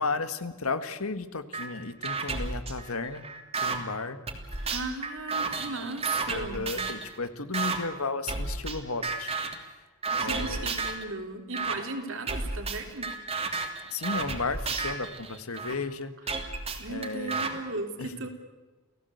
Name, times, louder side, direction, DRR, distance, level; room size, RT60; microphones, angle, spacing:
voice 1, 0.0-3.3 3.6-4.2 4.5-4.7 5.6-6.0 6.3-9.9 10.2-10.8 13.9-16.4 16.9-17.6 18.0-18.1, left 3 dB, 80° left, 10 dB, 1.8 m, -34 dB
sound 1, 1.5-1.7 2.0-3.8 4.3-7.1 7.5-7.8 8.3-8.8 9.0-9.6 10.0-11.0 11.5-11.8 12.3-15.7 16.3-17.5, right 4 dB, 30° right, 2.9 m, -32 dB
voice 2, 4.7-6.9 10.1-13.1 16.8-18.3, right 3 dB, 65° right, 4 dB, 3.7 m, -36 dB
29.5 x 17.0 x 8.1 m, 1.2 s
head